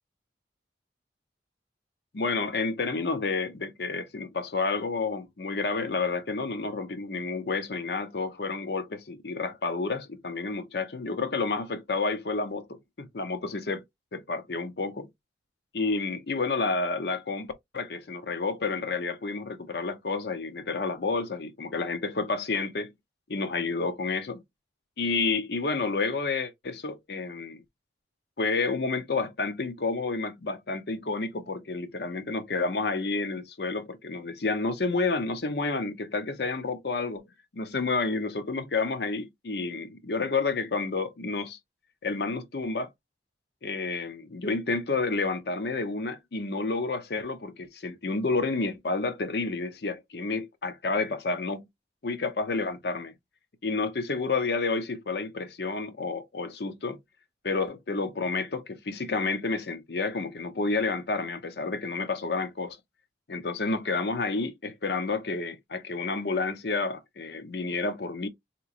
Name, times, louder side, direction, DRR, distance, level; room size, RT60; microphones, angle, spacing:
voice 1, 2.1-13.8 14.1-15.1 15.7-22.9 23.3-24.4 25.0-27.6 28.4-37.2 37.5-41.6 42.0-42.9 43.6-51.7 52.0-53.1 53.6-57.0 57.4-62.8 63.3-68.3, left 3 dB, 60° left, 0.7 m, -30 dB
3.8 x 2.9 x 2.4 m
head